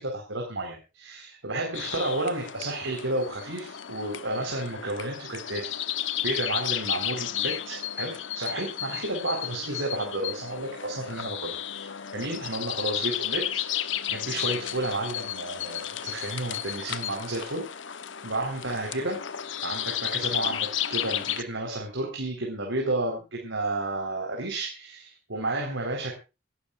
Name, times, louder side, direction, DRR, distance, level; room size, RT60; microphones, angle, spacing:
voice 1, 0.0-6.0 6.2-17.6 18.2-19.2 19.6-26.1, right 2 dB, 90° right, 1 dB, 4.1 m, -32 dB
sound 1, 1.7-21.4, left 11 dB, 80° left, 0.9 m, -33 dB
27.0 x 12.0 x 2.5 m, 0.30 s
head